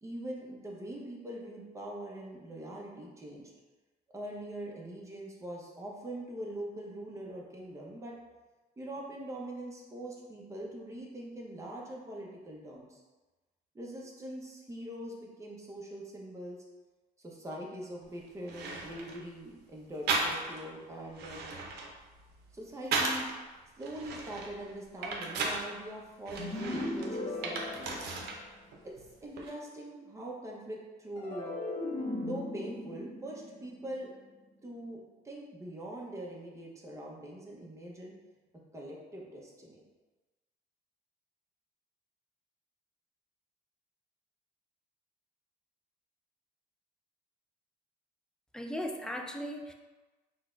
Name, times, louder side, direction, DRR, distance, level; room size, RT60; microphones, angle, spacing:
voice 1, 0.0-3.5 4.1-8.1 8.8-13.0 13.7-16.6 17.2-21.5 22.5-23.2 23.8-28.0 28.8-28.9 29.2-31.6 32.2-34.1 34.6-35.0 35.2-38.1 38.7-39.8, right 1 dB, 15° right, -3 dB, 0.8 m, -42 dB
sound 1, 18.0-18.1 18.5-19.2 20.1-20.7 21.1-23.3 23.8-25.7 26.3-28.4 28.7-29.5, right 3 dB, 70° right, 0.7 m, -35 dB
sound 2, 26.4-28.7 31.2-34.5, left 2 dB, 35° left, 0.7 m, -38 dB
voice 2, 48.5-49.7, equal, 5° left, 3 dB, 0.4 m, -37 dB
4.1 x 2.3 x 3.7 m, 1.2 s
cardioid pair, 110°, 17 cm